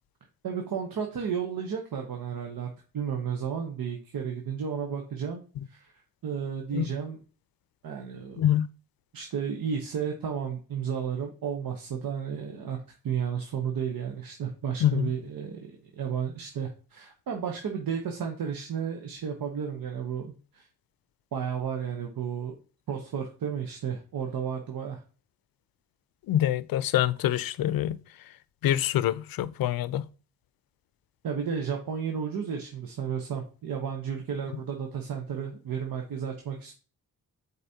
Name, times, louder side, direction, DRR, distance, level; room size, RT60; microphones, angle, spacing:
voice 1, 0.4-2.7 2.9-5.4 5.7-5.9 6.2-7.2 7.8-8.4 9.1-12.8 13.0-20.7 21.3-22.6 22.9-25.0 31.2-36.8, right 7 dB, 70° right, 1.0 m, -33 dB
voice 2, 8.4-8.7 14.8-15.1 26.3-28.0 28.6-30.0, left 12 dB, 70° left, 0.5 m, -25 dB
8.1 x 4.2 x 2.8 m
cardioid pair, 60°, 36 cm